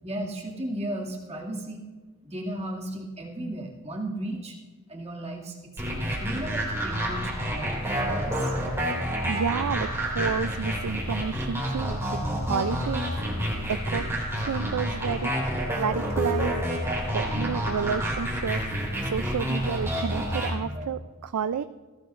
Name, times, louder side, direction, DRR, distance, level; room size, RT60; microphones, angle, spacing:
voice 1, 0.0-1.9 2.2-4.6 4.9-8.5 12.2-12.5 17.3-17.6 20.6-20.9, right 1 dB, 30° right, -2 dB, 2.2 m, -35 dB
sound 1, 5.8-20.5, equal, 10° right, 4.1 m, -29 dB
voice 2, 9.2-12.0 12.4-13.0 13.7-14.0 14.4-15.3 15.7-16.6 17.1-18.6 19.0-21.6, right 7 dB, 85° right, 12 dB, 0.4 m, -30 dB
21.0 x 16.0 x 2.5 m, 1.3 s
head